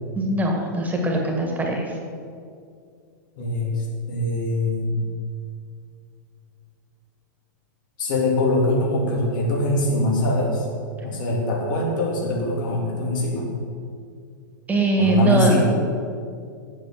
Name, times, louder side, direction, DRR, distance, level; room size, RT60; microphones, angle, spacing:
voice 1, 0.2-1.9 14.7-15.6, right 1 dB, 15° right, 0 dB, 1.9 m, -21 dB
voice 2, 3.4-5.0 8.0-10.6 11.0-13.5 15.0-15.7, left 1 dB, 75° left, -2 dB, 3.1 m, -23 dB
8.6 x 7.1 x 7.9 m, 2.3 s
hypercardioid pair, 125°, 11 cm